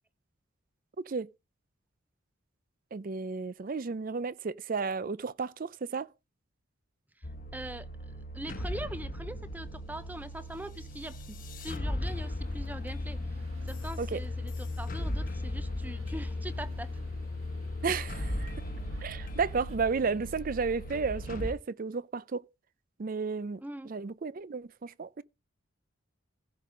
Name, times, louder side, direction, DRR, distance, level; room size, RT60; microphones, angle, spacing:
voice 1, 1.0-1.3 2.9-6.1 14.0-14.2 17.8-18.5 19.0-22.4 23.0-25.2, right 5 dB, 40° right, 0.5 m, -33 dB
sound 1, 7.2-21.5, left 1 dB, 40° left, 1.1 m, -37 dB
voice 2, 7.5-13.2 13.7-17.0 23.6-23.9, right 1 dB, 10° right, 0.7 m, -42 dB
sound 2, 12.0-19.8, right 1 dB, 85° right, 1.6 m, -48 dB
15.5 x 5.5 x 5.0 m
head